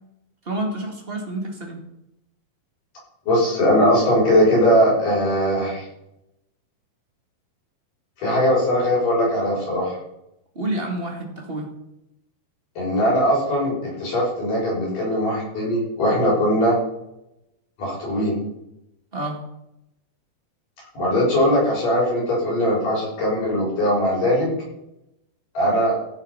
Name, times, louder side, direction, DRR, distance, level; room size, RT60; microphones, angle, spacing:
voice 1, 0.4-1.8 10.5-11.7 19.1-19.4, right 1 dB, 30° right, 1 dB, 1.0 m, -28 dB
voice 2, 3.3-5.8 8.2-10.0 12.8-16.8 17.8-18.3 20.9-24.5 25.5-26.0, equal, 55° left, -4 dB, 7.8 m, -20 dB
16.0 x 7.7 x 5.6 m, 0.84 s
omnidirectional pair, 4.6 m